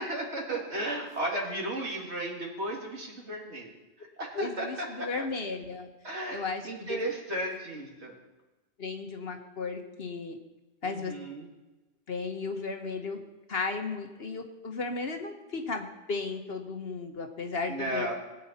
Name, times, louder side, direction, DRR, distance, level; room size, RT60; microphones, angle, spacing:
voice 1, 0.0-3.7 4.0-5.3 6.0-8.1 10.8-11.5 17.7-18.1, right 1 dB, 60° right, -1 dB, 2.6 m, -34 dB
voice 2, 4.3-5.9 6.3-7.0 8.8-10.4 10.8-11.1 12.1-13.2 13.5-18.1, left 4 dB, 50° left, 4 dB, 1.3 m, -35 dB
19.5 x 8.8 x 4.3 m, 1.1 s
omnidirectional pair, 1.3 m